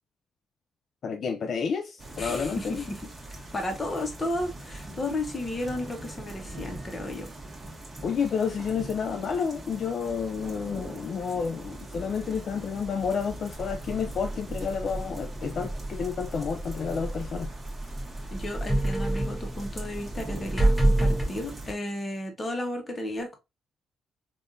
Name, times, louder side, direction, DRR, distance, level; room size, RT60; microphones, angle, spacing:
voice 1, 1.0-2.8 8.0-17.5, left 6 dB, 55° left, 0.4 m, -30 dB
sound 1, 2.0-21.7, right 1 dB, 20° right, 1.3 m, -42 dB
voice 2, 2.2-3.0 3.5-7.3 18.3-23.4, left 1 dB, 25° left, 1.1 m, -33 dB
sound 2, 13.6-21.2, right 1 dB, 5° left, 0.8 m, -29 dB
3.5 x 2.5 x 2.6 m
cardioid pair, 90°, 0 cm